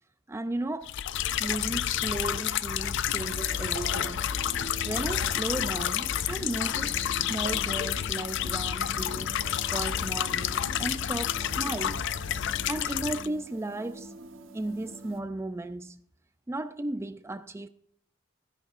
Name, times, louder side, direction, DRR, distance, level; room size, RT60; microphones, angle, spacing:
voice 1, 0.3-0.9 1.4-4.3 4.8-7.0 7.3-9.4 9.7-12.1 12.7-14.1 14.5-16.0 16.5-17.7, right 2 dB, 15° right, 0.4 m, -35 dB
sound 1, 0.9-13.3, left 10 dB, 60° left, 0.4 m, -30 dB
sound 2, 1.6-9.5, right 1 dB, 80° left, 5.0 m, -58 dB
sound 3, 3.1-15.2, right 2 dB, 70° right, 1.1 m, -45 dB
15.5 x 10.5 x 2.5 m
head